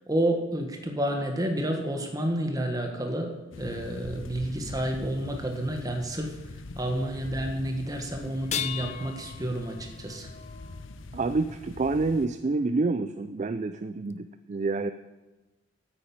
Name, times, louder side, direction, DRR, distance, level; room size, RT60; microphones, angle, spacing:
voice 1, 0.1-6.4 6.8-10.3, right 1 dB, 20° right, 4 dB, 1.5 m, -30 dB
sound 1, 3.5-12.3, left 3 dB, 80° left, 0.7 m, -43 dB
sound 2, 8.3-11.6 13.2-13.3 14.1-14.2, left 9 dB, 35° left, 0.4 m, -38 dB
voice 2, 11.1-14.9, right 3 dB, 35° right, 11 dB, 0.4 m, -28 dB
9.4 x 8.9 x 8.7 m, 1.1 s
head